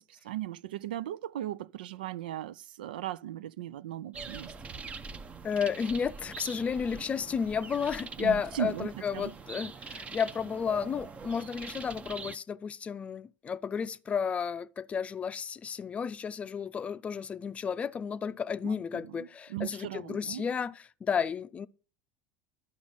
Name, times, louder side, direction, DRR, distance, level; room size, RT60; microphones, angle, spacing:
voice 1, 0.0-4.5 8.2-9.3 18.6-20.4, right 13 dB, 90° right, 0.4 m, -38 dB
sound 1, 4.1-12.4, right 4 dB, 25° right, 0.7 m, -43 dB
voice 2, 5.4-21.7, left 6 dB, 25° left, 0.5 m, -32 dB
11.5 x 5.2 x 5.4 m
supercardioid pair, 105°, 5 cm